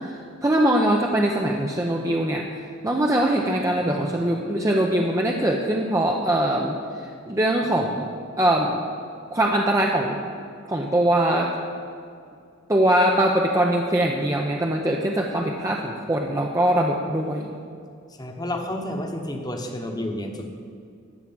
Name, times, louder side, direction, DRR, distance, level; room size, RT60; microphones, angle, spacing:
voice 1, 0.1-2.5 2.8-8.1 8.4-8.8 9.3-10.2 10.7-11.5 12.7-17.5, right 1 dB, 15° right, 0 dB, 0.7 m, -22 dB
voice 2, 18.1-20.5, left 1 dB, 20° left, 3 dB, 1.2 m, -30 dB
13.5 x 4.9 x 8.8 m, 2.3 s
head